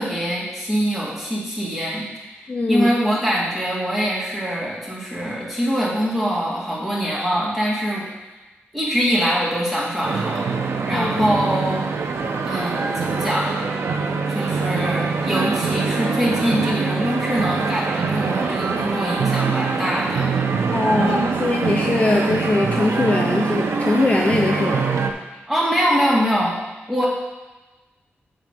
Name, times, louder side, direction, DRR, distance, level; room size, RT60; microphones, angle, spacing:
voice 1, 0.0-8.1 8.7-10.5 10.9-11.8 12.4-13.6 14.3-20.3 21.0-21.3 25.5-26.6 26.9-27.1, equal, 5° right, -7 dB, 2.2 m, -23 dB
voice 2, 2.5-2.9 10.9-11.3 20.7-24.9, left 2 dB, 30° left, 0 dB, 0.6 m, -21 dB
sound 1, 10.0-25.1, right 4 dB, 85° right, 0.6 m, -23 dB
7.7 x 3.6 x 6.6 m, 1.2 s
wide cardioid pair, 125°, 4 cm